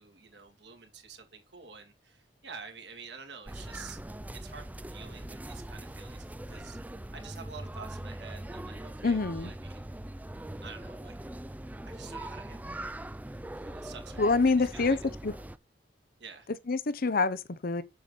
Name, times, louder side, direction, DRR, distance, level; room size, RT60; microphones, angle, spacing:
voice 1, 0.0-4.0 4.3-6.8 7.1-9.8 10.6-11.2 11.8-12.9 13.6-14.2 14.6-15.0 16.2-16.5, right 5 dB, 65° right, 2.4 m, -48 dB
sound 1, 3.5-15.6, right 1 dB, 10° right, 0.4 m, -41 dB
voice 2, 9.0-9.5 14.2-15.0 15.2-15.3 16.7-17.8, left 3 dB, 50° left, 0.7 m, -26 dB
7.8 x 6.9 x 4.1 m
head